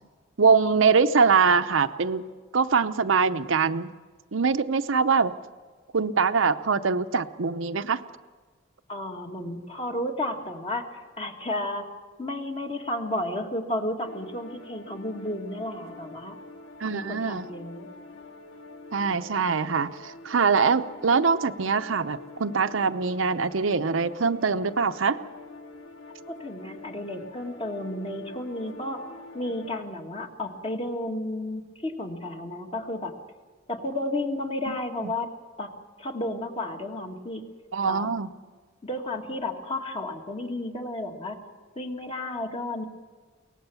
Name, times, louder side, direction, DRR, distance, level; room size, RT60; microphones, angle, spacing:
voice 1, 0.4-2.2 2.5-3.9 4.3-5.3 5.9-8.0 16.8-17.5 18.9-25.2 34.7-34.8 37.7-38.3, right 5 dB, 80° right, 10 dB, 0.7 m, -23 dB
voice 2, 8.9-10.9 11.2-11.9 12.2-16.4 16.9-17.9 26.3-29.1 29.3-33.1 33.7-35.3 35.6-35.7 36.0-37.5 37.8-38.1 38.8-41.4 41.8-42.9, left 1 dB, 30° left, 4 dB, 1.9 m, -32 dB
sound 1, 14.0-29.8, left 2 dB, 90° left, 2.0 m, -46 dB
23.0 x 18.0 x 7.0 m, 1.4 s
head